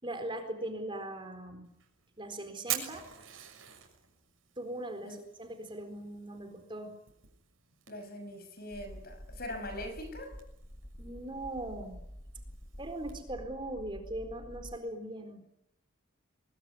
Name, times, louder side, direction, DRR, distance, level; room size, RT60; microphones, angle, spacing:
voice 1, 0.0-1.7 2.2-3.0 4.6-6.9 11.0-12.0 12.8-15.4, right 1 dB, 25° right, 4.2 m, -40 dB
Fire, 1.6-13.2, right 12 dB, 75° right, 6.5 m, -46 dB
voice 2, 7.9-10.4, left 1 dB, 50° left, 6.2 m, -42 dB
sound 1, 8.7-14.8, equal, 15° left, 1.8 m, -48 dB
24.0 x 23.0 x 9.7 m
head